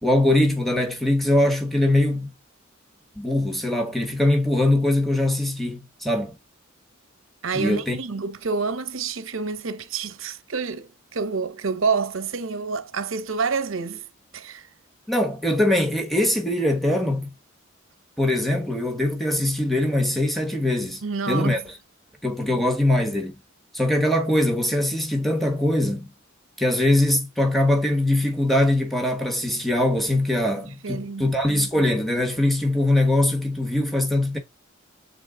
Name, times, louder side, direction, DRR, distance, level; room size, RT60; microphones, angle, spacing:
voice 1, 0.0-2.3 3.2-6.4 7.5-8.0 15.1-17.3 18.2-21.0 21.3-21.6 22.2-23.3 23.7-26.1 26.6-34.4, left 1 dB, ahead, 1.1 m, -22 dB
voice 2, 7.4-14.1 14.3-14.7 21.0-21.6 30.6-31.3, right 5 dB, 70° right, 0.9 m, -28 dB
7.4 x 4.0 x 3.7 m
head